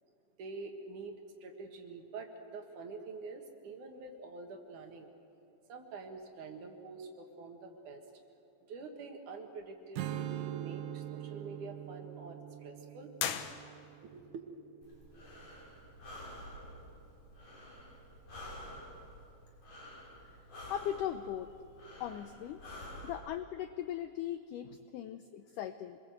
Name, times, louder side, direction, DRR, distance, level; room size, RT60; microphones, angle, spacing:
voice 1, 0.4-5.1 5.7-8.0 8.7-13.1 14.0-14.4, right 4 dB, 55° right, 3 dB, 2.9 m, -46 dB
Strum, 10.0-15.3, right 12 dB, 75° right, 2.5 m, -43 dB
sound 1, 13.1-14.2, left 9 dB, 70° left, 1.8 m, -38 dB
Breathing, 14.8-23.2, left 1 dB, 50° left, 7.3 m, -50 dB
voice 2, 20.7-21.6 22.0-22.6 23.0-26.0, left 11 dB, 90° left, 10 dB, 1.8 m, -39 dB
26.0 x 21.5 x 7.8 m, 2.6 s
omnidirectional pair, 4.6 m